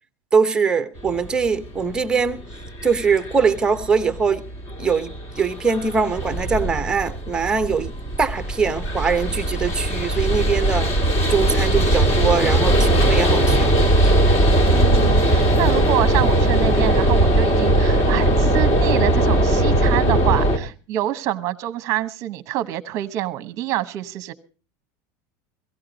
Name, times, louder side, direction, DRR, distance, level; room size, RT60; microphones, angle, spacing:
voice 1, 0.3-2.4 2.8-4.4 4.8-7.9 8.2-10.9 11.3-13.8, right 5 dB, 10° right, 0.8 m, -22 dB
sound 1, 1.0-20.6, right 1 dB, 30° left, 2.1 m, -19 dB
voice 2, 14.7-24.3, right 14 dB, 35° right, 0.9 m, -26 dB
17.5 x 15.5 x 3.9 m
supercardioid pair, 175°, 9 cm